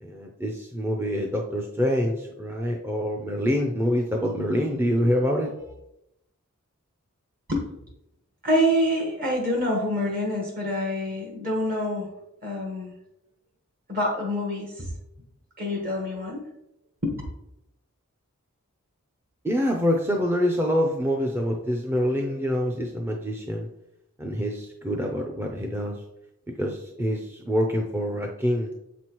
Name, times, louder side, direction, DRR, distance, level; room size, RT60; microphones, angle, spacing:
voice 1, 0.0-5.5 19.4-23.7 24.2-26.0 26.6-28.7, equal, 10° right, 1 dB, 0.5 m, -26 dB
voice 2, 8.4-12.1 12.4-12.9 13.9-14.9 15.6-16.4 17.0-17.1, equal, 40° right, -2 dB, 1.3 m, -26 dB
7.6 x 6.0 x 3.0 m, 0.85 s
head